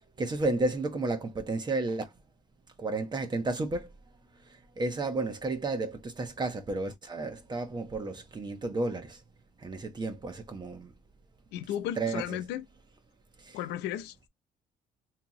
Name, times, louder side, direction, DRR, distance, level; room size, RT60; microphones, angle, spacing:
voice 1, 0.2-2.0 2.8-3.9 4.3-9.2 9.6-10.9 12.0-12.4 13.4-13.6, right 2 dB, 25° right, 1.2 m, -32 dB
voice 2, 11.5-12.7 13.5-14.3, left 11 dB, 85° left, 0.7 m, -35 dB
3.4 x 3.0 x 3.0 m
cardioid pair, 110°, 17 cm